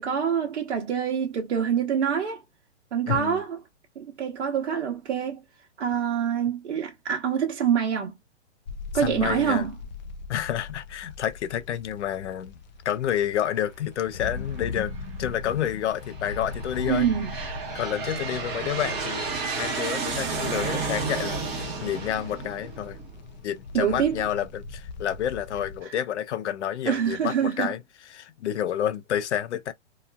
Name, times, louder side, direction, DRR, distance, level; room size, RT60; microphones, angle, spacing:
voice 1, 0.0-2.4 2.9-3.6 4.0-5.4 5.8-8.2 8.9-9.7 16.9-17.3 23.7-24.2 26.9-27.7, right 8 dB, 75° right, 0.9 m, -25 dB
voice 2, 3.1-3.4 8.9-9.6 10.3-12.5 12.8-14.9 15.2-17.1 17.7-19.3 19.6-23.0 23.4-27.8 28.1-29.7, left 10 dB, 75° left, 0.7 m, -29 dB
sound 1, 8.7-25.8, left 4 dB, 40° left, 0.4 m, -40 dB
Aircraft, 14.5-15.1 15.8-23.3, right 5 dB, 30° right, 0.9 m, -32 dB
2.9 x 2.4 x 2.2 m
hypercardioid pair, 150°, 35 cm